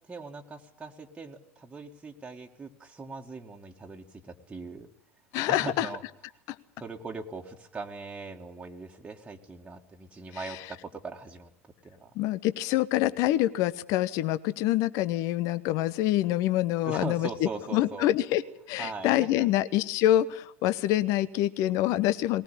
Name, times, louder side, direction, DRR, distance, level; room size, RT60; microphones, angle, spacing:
voice 1, 0.1-4.9 5.5-6.0 6.8-11.5 11.8-12.1 16.9-18.1 18.8-19.5, right 4 dB, 15° right, 1 dB, 2.0 m, -40 dB
voice 2, 5.3-5.9 6.5-6.6 10.4-10.6 12.2-18.4 18.7-22.4, left 14 dB, 45° left, 16 dB, 0.9 m, -26 dB
20.0 x 19.0 x 8.9 m, 0.71 s
figure-of-eight pair, 80°, 7 cm